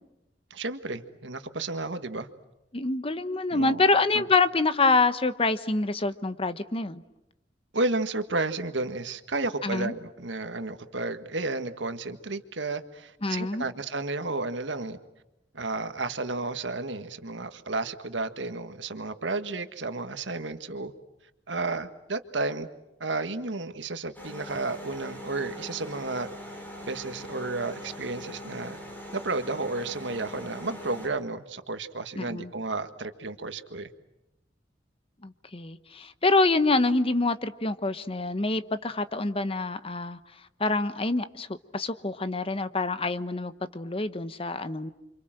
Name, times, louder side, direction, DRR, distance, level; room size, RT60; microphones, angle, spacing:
voice 1, 0.5-2.3 3.5-3.8 4.1-4.2 7.7-15.0 15.5-20.9 21.5-22.7 23.0-26.3 26.8-28.8 29.1-33.9, right 3 dB, 90° right, 1.7 m, -32 dB
voice 2, 2.7-7.0 9.6-9.9 13.2-13.6 32.2-32.5 35.2-40.2 40.6-44.9, left 3 dB, 30° left, 1.0 m, -26 dB
sound 1, 24.1-31.1, left 1 dB, 10° left, 7.4 m, -42 dB
29.0 x 26.0 x 7.7 m
head